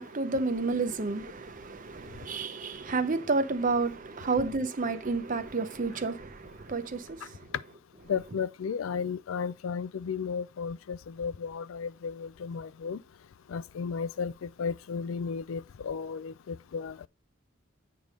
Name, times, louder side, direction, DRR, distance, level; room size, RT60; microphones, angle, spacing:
voice 1, 0.0-7.5, right 3 dB, 40° right, 0.7 m, -30 dB
voice 2, 8.1-13.0 13.5-17.1, left 6 dB, 75° left, 0.4 m, -34 dB
8.6 x 3.4 x 6.3 m
head